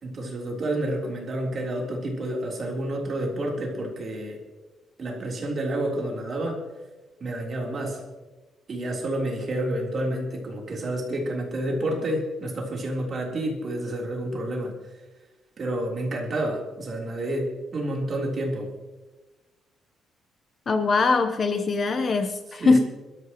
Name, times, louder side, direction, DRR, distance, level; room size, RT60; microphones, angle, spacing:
voice 1, 0.0-4.4 5.0-6.6 7.2-8.0 8.7-14.7 15.6-18.7 22.5-22.8, right 1 dB, 35° right, -1 dB, 3.6 m, -29 dB
voice 2, 20.7-22.8, left 4 dB, 35° left, 7 dB, 0.9 m, -22 dB
24.0 x 13.5 x 3.1 m, 1.2 s
cardioid pair, 150°, 0 cm